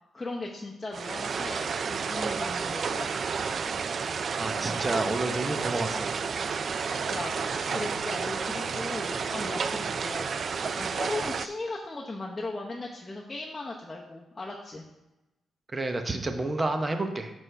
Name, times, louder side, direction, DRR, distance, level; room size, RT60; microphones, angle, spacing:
voice 1, 0.1-3.1 7.1-7.4 7.7-14.8, left 2 dB, 20° left, -3 dB, 0.8 m, -37 dB
sound 1, 0.9-11.5, right 5 dB, 50° right, 0.3 m, -31 dB
voice 2, 4.4-6.1 15.7-17.3, right 2 dB, 25° right, 6 dB, 0.8 m, -30 dB
Speech synthesizer, 6.9-10.2, left 5 dB, 90° left, 0.8 m, -48 dB
8.9 x 6.3 x 3.4 m, 0.99 s
cardioid pair, 105°, 0 cm